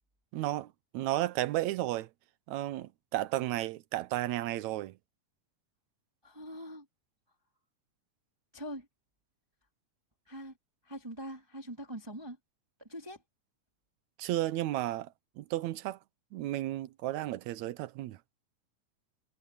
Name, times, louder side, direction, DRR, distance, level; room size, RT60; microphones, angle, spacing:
voice 1, 0.3-2.1 2.5-4.9 14.2-15.1 15.4-16.0 16.3-18.2, right 15 dB, 75° right, 1.9 m, -33 dB
voice 2, 6.2-6.9 8.5-8.9 10.3-10.5 10.8-12.4 12.8-13.2, equal, 5° right, 3.6 m, -43 dB
omnidirectional pair, 3.7 m